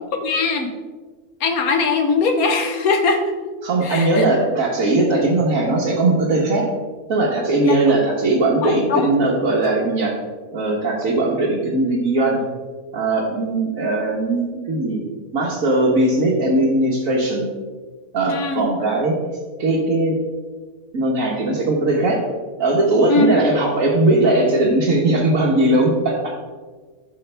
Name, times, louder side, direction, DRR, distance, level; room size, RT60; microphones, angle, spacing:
voice 1, 0.2-0.7 1.4-3.2 3.8-4.2 7.6-7.8 8.6-9.1 18.3-18.6 23.1-23.4, left 4 dB, 75° left, 6 dB, 1.4 m, -20 dB
voice 2, 3.6-6.7 7.1-10.1 10.5-12.4 12.9-15.0 15.3-17.5 18.1-19.2 19.6-20.2 20.9-22.2 22.6-26.3, right 2 dB, 65° right, -5 dB, 1.6 m, -19 dB
13.0 x 5.9 x 3.4 m, 1.4 s
omnidirectional pair, 1.6 m